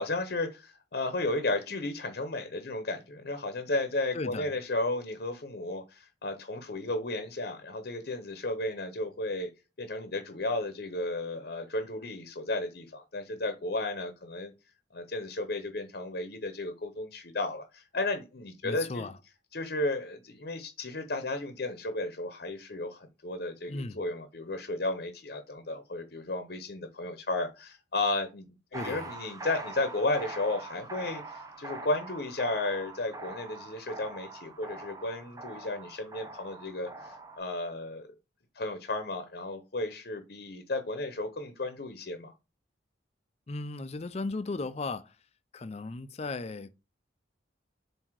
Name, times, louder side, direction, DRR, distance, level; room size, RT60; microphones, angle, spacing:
voice 1, 0.0-9.5 9.8-14.5 14.9-19.0 19.5-28.5 28.8-38.1 38.5-42.3, left 2 dB, 55° left, 0.8 m, -33 dB
voice 2, 4.1-4.5 18.6-19.2 23.7-24.0 28.7-29.1 43.5-45.2 45.5-46.7, left 3 dB, 35° left, 0.4 m, -36 dB
sound 1, 28.7-37.4, right 2 dB, 20° right, 0.7 m, -43 dB
7.4 x 2.8 x 4.6 m
head